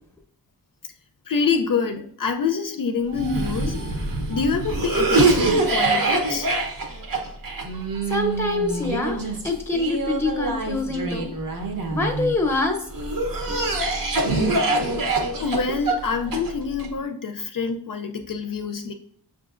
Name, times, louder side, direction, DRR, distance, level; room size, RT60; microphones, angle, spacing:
voice 1, 1.3-3.8 4.3-6.5 15.4-18.9, left 5 dB, 60° left, 6 dB, 0.5 m, -26 dB
Cough, 3.1-12.3 12.9-16.9, right 2 dB, 60° right, 0.8 m, -24 dB
voice 2, 8.1-11.3 11.9-12.8, left 2 dB, 5° left, 4 dB, 0.7 m, -25 dB
6.1 x 2.6 x 2.4 m, 0.62 s
wide cardioid pair, 80°, 37 cm